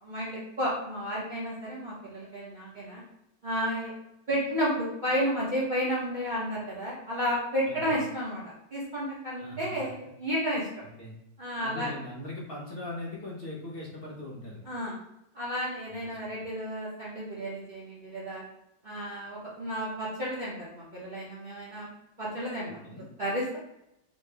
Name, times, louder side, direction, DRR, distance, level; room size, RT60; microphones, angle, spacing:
voice 1, 0.0-3.0 3.4-3.9 4.3-10.7 11.4-11.9 14.7-15.0 15.3-18.4 18.8-21.9 22.2-22.8 23.2-23.6, equal, 60° right, -8 dB, 0.4 m, -32 dB
voice 2, 9.4-9.8 11.0-11.1 11.6-14.6 15.9-16.5 22.8-23.1, left 1 dB, 50° left, -3 dB, 0.7 m, -40 dB
3.2 x 2.7 x 3.3 m, 0.84 s
omnidirectional pair, 2.0 m